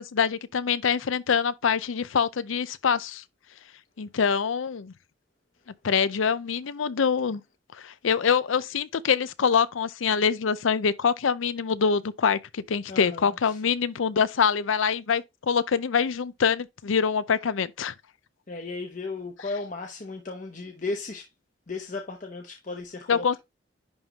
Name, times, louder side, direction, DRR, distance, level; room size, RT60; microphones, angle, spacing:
voice 1, 0.0-3.2 4.0-4.9 5.8-7.4 7.8-17.9 23.1-23.4, left 6 dB, 85° left, 0.5 m, -25 dB
voice 2, 12.9-13.6 18.5-21.3 21.7-23.4, left 3 dB, 40° left, 0.9 m, -35 dB
10.5 x 3.7 x 2.9 m
head